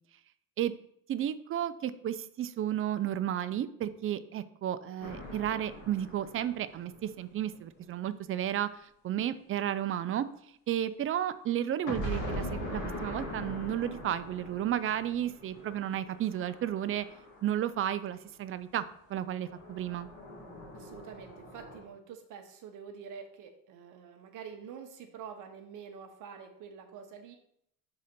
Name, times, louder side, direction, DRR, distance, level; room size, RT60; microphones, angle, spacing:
voice 1, 1.1-10.3 10.7-17.1 17.4-18.8 19.1-20.1, right 11 dB, 40° right, 13 dB, 0.4 m, -33 dB
sound 1, 5.0-7.8 11.9-18.1 19.4-21.8, equal, 55° left, 2.0 m, -42 dB
voice 2, 20.7-27.4, right 7 dB, 60° right, 4 dB, 0.9 m, -47 dB
4.9 x 3.8 x 5.8 m, 0.71 s
cardioid pair, 105°, 35 cm